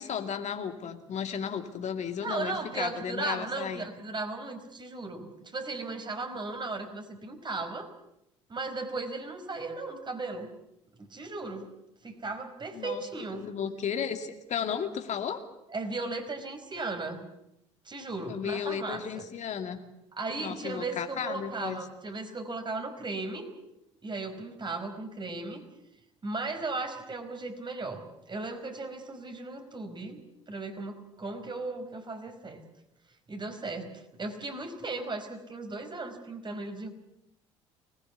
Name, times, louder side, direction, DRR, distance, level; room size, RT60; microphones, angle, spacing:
voice 1, 0.0-3.9 12.7-13.0 13.3-15.4 18.3-19.8 20.4-21.8, left 7 dB, 50° left, 7 dB, 2.5 m, -34 dB
voice 2, 2.2-7.9 8.5-10.5 11.0-11.6 12.0-13.5 15.7-17.3 17.8-19.2 20.1-23.5 24.0-25.6 26.2-30.2 30.5-32.6 33.3-33.9 34.2-36.9, right 3 dB, 30° right, 6 dB, 4.9 m, -36 dB
25.0 x 20.0 x 8.3 m, 0.85 s
figure-of-eight pair, 55°, 15 cm